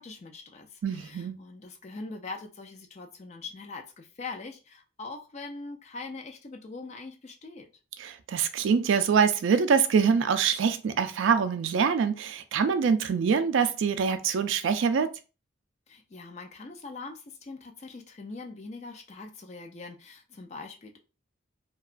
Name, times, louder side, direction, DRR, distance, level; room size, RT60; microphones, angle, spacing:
voice 1, 0.0-7.7 15.9-21.0, left 3 dB, 35° left, 0.4 m, -42 dB
voice 2, 0.8-1.4 8.0-15.1, right 6 dB, 70° right, 0.3 m, -24 dB
2.8 x 2.3 x 2.4 m
head